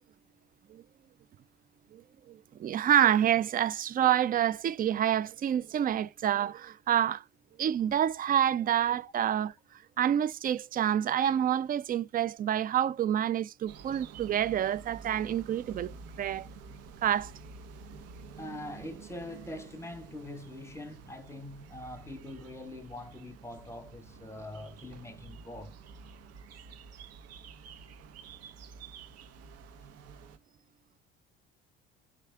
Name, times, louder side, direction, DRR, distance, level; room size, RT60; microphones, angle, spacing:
voice 1, 2.3-7.2 7.6-9.5 10.0-15.9 16.2-16.5 17.0-17.3, right 10 dB, 30° right, 0.4 m, -27 dB
sound 1, 13.7-30.4, right 5 dB, 50° right, 0.7 m, -49 dB
voice 2, 18.3-25.8, left 1 dB, 10° left, 1.0 m, -43 dB
4.9 x 3.3 x 3.3 m
hypercardioid pair, 55°, 31 cm